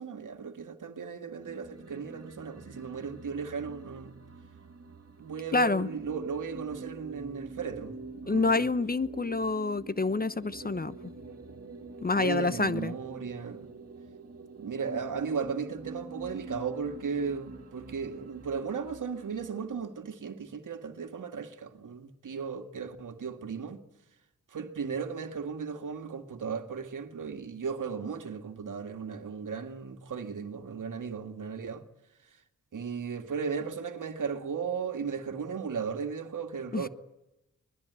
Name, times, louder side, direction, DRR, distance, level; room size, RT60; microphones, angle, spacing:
voice 1, 0.0-4.1 5.2-8.0 8.2-8.6 12.2-13.7 14.6-23.8 24.5-31.8 32.7-36.9, right 6 dB, 60° right, 2.1 m, -36 dB
sound 1, 1.4-20.0, right 3 dB, 45° right, 2.6 m, -46 dB
voice 2, 5.5-5.9 8.3-11.0 12.0-12.9 36.7-36.9, left 3 dB, 25° left, 0.9 m, -27 dB
23.5 x 20.5 x 8.3 m
supercardioid pair, 45°, 35 cm